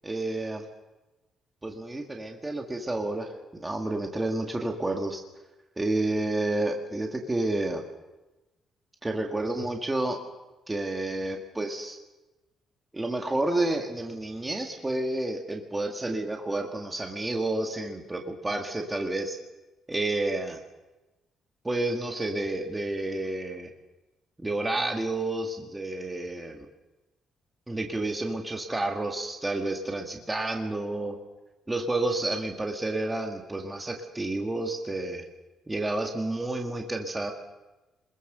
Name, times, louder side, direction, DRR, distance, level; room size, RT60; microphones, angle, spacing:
voice 1, 0.0-0.7 1.6-3.3 3.6-5.2 5.8-7.8 9.0-10.2 10.7-12.0 12.9-19.4 19.9-20.6 21.6-23.7 24.4-26.7 27.7-31.2 31.7-35.3 35.7-37.3, right 2 dB, 10° right, 2 dB, 1.9 m, -30 dB
27.0 x 21.5 x 6.8 m, 1.1 s
cardioid pair, 175°, 0 cm